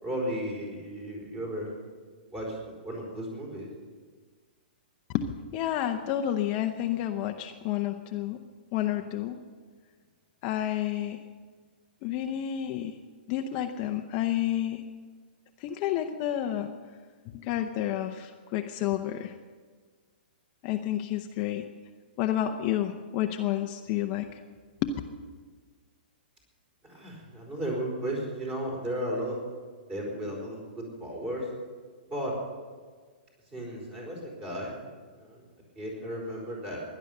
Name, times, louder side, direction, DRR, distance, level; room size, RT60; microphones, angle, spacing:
voice 1, 0.0-1.7 2.3-2.6 2.8-3.7 26.8-29.4 29.9-31.5 32.1-32.4 33.5-34.7 35.1-35.4 35.7-36.8, equal, 20° right, -1 dB, 4.6 m, -34 dB
voice 2, 5.1-8.4 8.7-9.4 10.4-11.2 12.0-13.0 13.3-14.8 15.6-16.7 17.3-19.3 20.6-21.6 22.2-24.3 24.8-24.9, left 11 dB, 30° left, 4 dB, 0.8 m, -30 dB
16.5 x 11.0 x 6.7 m, 1.5 s
hypercardioid pair, 155°, 6 cm